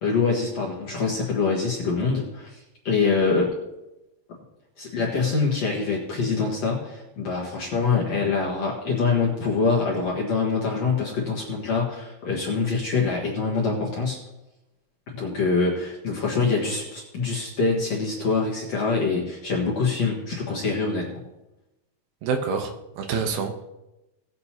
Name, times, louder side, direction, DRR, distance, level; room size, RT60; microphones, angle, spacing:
voice 1, 0.0-3.6 4.8-14.2 15.1-21.2, left 4 dB, 55° left, -4 dB, 2.3 m, -25 dB
voice 2, 22.2-23.6, right 5 dB, 80° right, 5 dB, 2.9 m, -27 dB
19.0 x 7.8 x 2.9 m, 0.97 s
omnidirectional pair, 4.3 m